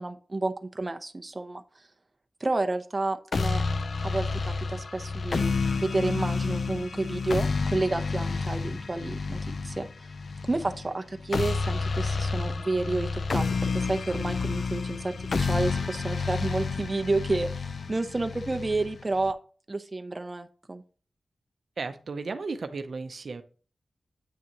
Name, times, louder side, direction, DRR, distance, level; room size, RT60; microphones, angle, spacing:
voice 1, 0.0-1.6 2.4-3.6 4.0-9.4 9.6-10.1 10.4-19.4 19.7-20.8, right 2 dB, 30° right, 8 dB, 0.7 m, -30 dB
sound 1, 3.3-19.3, left 4 dB, 65° left, 0.4 m, -30 dB
voice 2, 21.8-23.4, right 4 dB, 65° right, 8 dB, 0.7 m, -34 dB
8.6 x 6.0 x 3.0 m, 0.39 s
wide cardioid pair, 95°, 0 cm